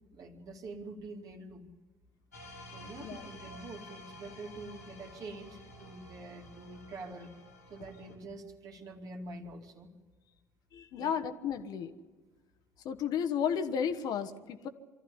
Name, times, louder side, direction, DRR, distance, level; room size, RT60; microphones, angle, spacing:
voice 1, 0.0-1.7 2.7-7.3 7.7-9.9 11.0-11.1, right 2 dB, 45° right, 3 dB, 2.6 m, -46 dB
sound 1, 2.3-8.2, left 1 dB, 90° left, 3.2 m, -51 dB
voice 2, 10.7-11.9 12.8-14.7, left 7 dB, 50° left, 9 dB, 1.4 m, -33 dB
25.5 x 14.0 x 9.9 m, 1.4 s
figure-of-eight pair, 55°, 8 cm